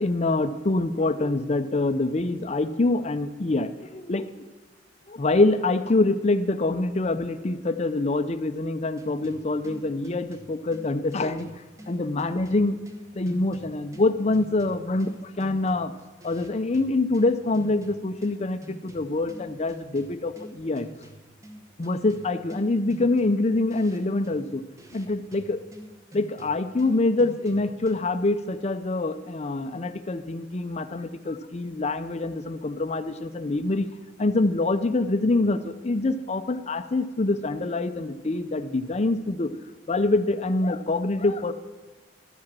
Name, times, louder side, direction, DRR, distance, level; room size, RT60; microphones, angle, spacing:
voice 1, 0.0-4.4 5.1-11.5 11.9-12.8 13.2-15.9 16.2-20.9 21.8-24.6 24.9-25.6 26.1-33.9 34.2-39.5 39.9-41.5, left 2 dB, 35° left, 12 dB, 0.5 m, -25 dB
sound 1, 9.0-28.3, right 1 dB, 15° right, 1.1 m, -47 dB
12.0 x 7.7 x 7.5 m, 1.3 s
head